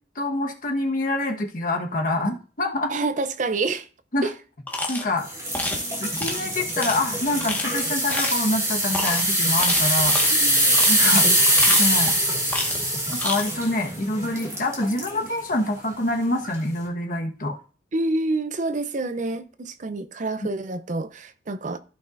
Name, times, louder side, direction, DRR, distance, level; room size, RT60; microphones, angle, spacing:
voice 1, 0.1-2.9 4.1-4.3 4.9-5.3 6.0-10.2 10.9-11.3 11.8-12.2 13.1-17.6, left 2 dB, 50° left, 1.3 m, -26 dB
voice 2, 2.9-3.9 4.2-4.3 10.3-11.4 17.9-21.8, right 2 dB, 45° right, 0.6 m, -28 dB
sound 1, 4.7-5.1 5.5-5.8 6.2-6.4 6.8-7.0 7.4-7.7 8.1-8.5 8.9-9.2 9.6-10.3 10.7-11.0 11.4-12.1 12.5-12.9 13.1-13.4, left 2 dB, 10° left, 1.5 m, -29 dB
sound 2, 5.3-15.2 15.7-15.9 16.4-16.5, right 1 dB, 20° right, 2.6 m, -23 dB
14.5 x 5.6 x 2.6 m
head